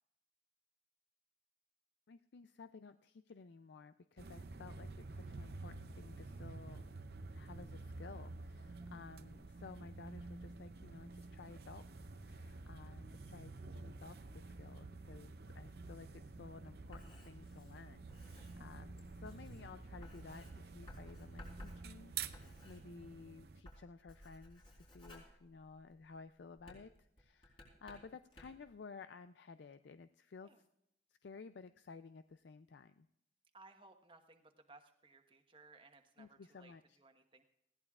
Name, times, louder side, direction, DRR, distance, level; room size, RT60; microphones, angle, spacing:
voice 1, 2.1-6.9 7.3-30.5 31.2-33.1 36.2-37.0, left 4 dB, 75° left, 11 dB, 0.4 m, -55 dB
sound 1, 4.2-23.6, right 4 dB, 60° right, 0.6 m, -50 dB
Writing, 16.6-23.3 23.6-26.1 26.6-28.7, equal, 30° left, 4.7 m, -57 dB
voice 2, 18.6-18.9 30.4-30.6 33.5-37.4, right 3 dB, 30° right, 5 dB, 1.2 m, -62 dB
20.0 x 16.5 x 2.4 m, 0.82 s
head